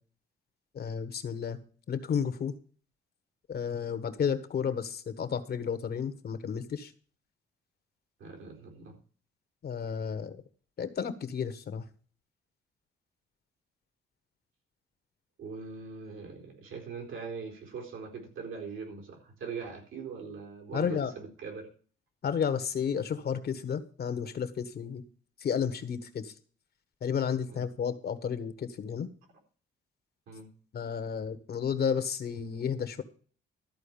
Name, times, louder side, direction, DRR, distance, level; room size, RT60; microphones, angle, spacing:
voice 1, 0.7-1.6 1.9-2.5 3.5-6.9 9.6-10.4 10.8-11.8 20.7-21.1 22.2-25.0 25.4-26.3 27.0-29.1 30.7-33.0, left 7 dB, 50° left, 12 dB, 1.4 m, -32 dB
voice 2, 8.2-9.0 15.4-21.7 27.5-27.6 30.3-30.5, right 5 dB, 80° right, 1 dB, 4.1 m, -41 dB
13.5 x 4.5 x 8.7 m, 0.43 s
cardioid pair, 90°, 20 cm